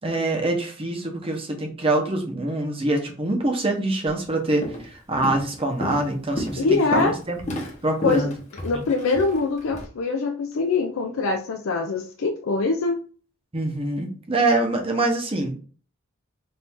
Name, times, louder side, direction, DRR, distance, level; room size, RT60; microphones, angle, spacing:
voice 1, 0.0-7.5 7.8-8.3 8.7-8.8 13.5-15.5, right 2 dB, 25° right, 3 dB, 0.8 m, -25 dB
Walk footsteps, 4.1-4.3 4.6-4.9 5.2-9.8, equal, 35° left, 0.9 m, -33 dB
voice 2, 6.6-7.2 8.0-8.3 8.6-13.0, left 4 dB, 80° left, 3 dB, 0.4 m, -23 dB
4.4 x 2.5 x 3.5 m, 0.41 s
head